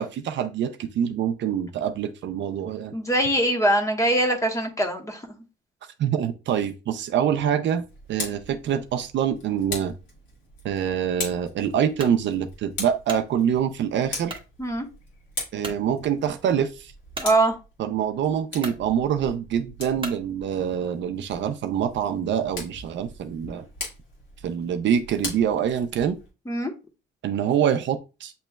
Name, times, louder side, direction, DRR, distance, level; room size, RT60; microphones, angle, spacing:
voice 1, 0.0-2.9 6.0-7.8 8.1-9.9 10.6-14.4 15.5-16.9 17.8-23.6 24.4-26.2 27.2-28.3, right 8 dB, 65° right, 0.5 m, -25 dB
voice 2, 2.9-5.2 14.6-14.9 17.2-17.6 26.5-26.7, right 1 dB, 15° left, 1.1 m, -22 dB
Tick, 7.9-26.3, left 2 dB, 75° left, 2.1 m, -40 dB
sound 1, 12.0-12.2 12.8-13.3 14.3-14.5 15.0-15.1 15.6-15.8 17.1-17.3 18.1-18.2 18.6-18.8 20.0-20.2, right 2 dB, 25° right, 1.1 m, -36 dB
7.7 x 3.0 x 2.2 m
cardioid pair, 90°, 20 cm